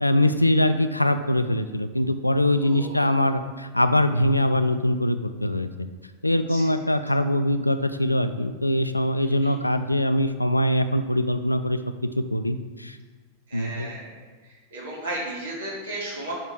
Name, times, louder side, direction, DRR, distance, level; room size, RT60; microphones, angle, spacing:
voice 1, 0.0-5.7 6.2-13.0 13.5-13.9, left 1 dB, 85° left, 10 dB, 0.3 m, -23 dB
voice 2, 2.6-3.2 6.5-6.7 9.2-9.5 13.5-14.2 14.7-16.3, right 1 dB, 65° right, -4 dB, 2.1 m, -35 dB
5.6 x 5.0 x 4.5 m, 1.4 s
figure-of-eight pair, 90°, 0 cm